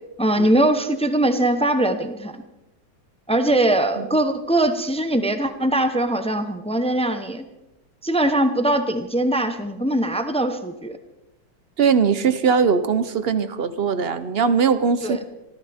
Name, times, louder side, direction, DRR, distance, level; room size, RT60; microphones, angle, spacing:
voice 1, 0.2-2.3 3.3-7.5 8.0-11.0 15.0-15.2, right 1 dB, 5° left, 8 dB, 0.5 m, -21 dB
voice 2, 11.8-15.2, right 6 dB, 55° right, 12 dB, 0.6 m, -20 dB
26.5 x 14.5 x 3.5 m, 0.96 s
omnidirectional pair, 2.0 m